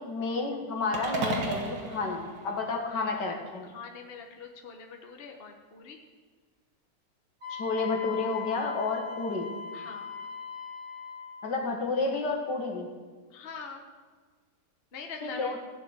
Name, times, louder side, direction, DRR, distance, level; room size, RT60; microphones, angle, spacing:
voice 1, 0.0-3.7 7.5-9.5 11.4-12.9 15.2-15.6, left 3 dB, 65° left, 2 dB, 2.2 m, -31 dB
sound 1, 0.9-3.3, right 2 dB, 75° right, 2.3 m, -34 dB
voice 2, 3.6-6.0 9.7-10.1 13.3-13.8 14.9-15.6, left 5 dB, 35° left, 3 dB, 1.1 m, -43 dB
Wind instrument woodwind instrument, 7.4-11.5, left 6 dB, 35° right, 3.5 m, -40 dB
15.0 x 5.9 x 8.0 m, 1.5 s
omnidirectional pair, 2.0 m